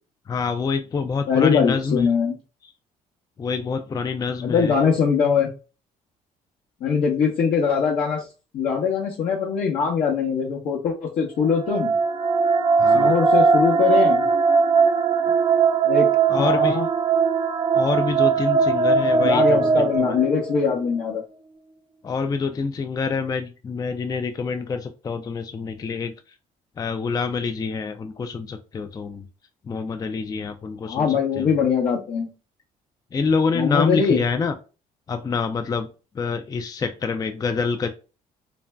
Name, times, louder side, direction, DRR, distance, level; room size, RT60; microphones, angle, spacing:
voice 1, 0.3-2.1 3.4-4.7 12.8-13.1 16.3-16.8 17.7-20.2 22.0-26.1 26.8-29.3 29.7-31.6 33.1-34.5 35.1-35.9 36.1-37.9, left 5 dB, 25° left, 7 dB, 0.4 m, -26 dB
voice 2, 1.3-2.3 4.4-5.5 6.8-8.2 8.5-11.9 12.9-14.3 15.8-16.1 16.4-16.9 19.0-21.2 30.8-32.3 33.5-34.2, left 6 dB, 65° left, -3 dB, 0.7 m, -22 dB
sound 1, 11.5-20.7, right 5 dB, 30° right, 0.5 m, -19 dB
2.5 x 2.1 x 3.2 m, 0.33 s
supercardioid pair, 80°, 15 cm